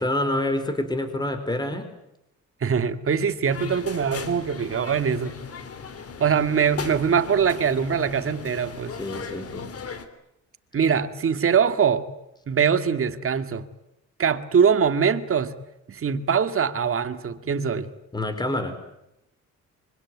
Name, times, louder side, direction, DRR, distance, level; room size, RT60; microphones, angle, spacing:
voice 1, 0.0-1.9 9.0-9.7 18.1-18.8, left 1 dB, 15° left, 9 dB, 4.6 m, -27 dB
voice 2, 2.6-5.4 6.2-8.9 10.7-12.1 12.5-13.7 14.2-15.5 15.9-17.9, right 7 dB, 45° right, 10 dB, 2.0 m, -22 dB
sound 1, 3.5-10.1, left 5 dB, 50° left, 3.1 m, -37 dB
25.5 x 24.5 x 9.5 m, 0.84 s
cardioid pair, 90°, 30 cm